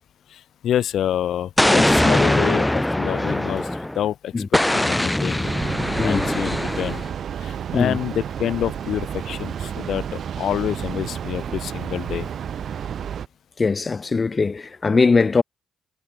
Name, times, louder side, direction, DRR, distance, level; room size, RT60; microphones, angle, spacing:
voice 1, 0.3-3.7 3.9-4.3 4.7-5.5 6.0-7.0 7.4-12.3, left 11 dB, 70° left, 1.2 m, -27 dB
Explosion, 1.6-4.0 4.5-7.1, left 1 dB, 10° left, 1.6 m, -21 dB
Train, 5.4-13.3, right 8 dB, 60° right, 0.9 m, -31 dB
voice 2, 13.6-15.4, left 4 dB, 30° left, 0.7 m, -20 dB
cardioid pair, 90°, 0 cm